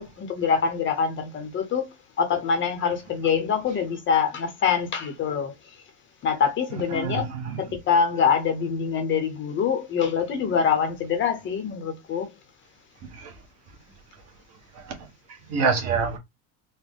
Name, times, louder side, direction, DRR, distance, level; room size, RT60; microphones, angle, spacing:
voice 1, 0.0-1.9 2.2-5.7 6.2-7.3 7.6-12.3, left 6 dB, 30° left, 0.7 m, -25 dB
voice 2, 6.7-7.6 13.1-13.3 14.7-16.2, right 5 dB, 40° right, 1.1 m, -28 dB
4.0 x 2.1 x 3.5 m
supercardioid pair, 145°, 39 cm